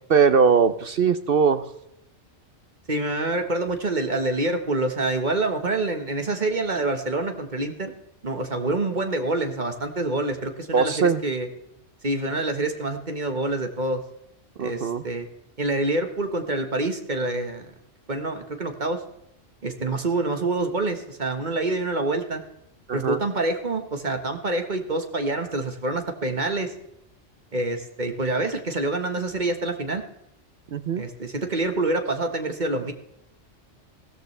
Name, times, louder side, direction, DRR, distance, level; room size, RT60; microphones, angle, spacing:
voice 1, 0.1-1.6 10.7-11.2 14.6-15.0 22.9-23.2 30.7-31.0, right 6 dB, 55° right, 12 dB, 0.8 m, -20 dB
voice 2, 2.9-7.9 8.2-11.5 12.0-14.0 14.6-15.3 15.6-17.7 18.1-19.0 19.6-22.4 22.9-26.7 27.5-30.0 31.0-32.9, right 2 dB, 40° right, 6 dB, 1.5 m, -26 dB
15.5 x 13.5 x 3.3 m, 0.80 s
omnidirectional pair, 1.3 m